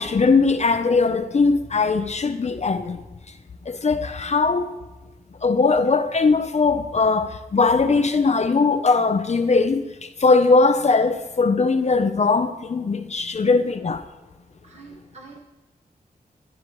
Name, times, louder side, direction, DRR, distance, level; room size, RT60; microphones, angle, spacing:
voice 1, 0.0-3.0 3.7-4.7 5.4-14.0, left 4 dB, 45° left, 0.6 m, -20 dB
voice 2, 14.6-15.4, right 4 dB, 45° right, 1.7 m, -44 dB
21.0 x 11.5 x 3.1 m
wide cardioid pair, 110°, 16 cm